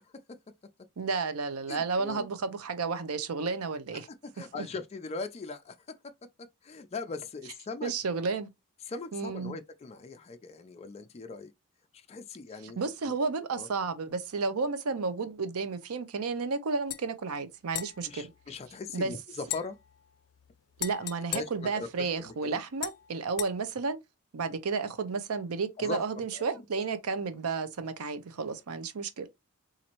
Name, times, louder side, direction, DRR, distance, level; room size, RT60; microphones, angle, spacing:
voice 1, 1.0-4.1 4.6-4.7 7.8-8.5 9.1-9.6 12.6-18.3 18.9-19.1 20.8-24.0 24.3-29.3, right 4 dB, 70° right, 0.6 m, -32 dB
voice 2, 1.7-2.3 4.4-5.8 6.6-7.9 8.9-11.5 12.1-12.8 13.5-13.7 18.1-19.8 21.3-22.6 25.8-26.0 26.3-26.4, left 4 dB, 30° left, 0.4 m, -39 dB
sound 1, 16.9-17.0 17.7-19.0 19.4-22.3 22.8-23.5, left 15 dB, 85° left, 0.5 m, -40 dB
4.1 x 2.5 x 2.9 m
head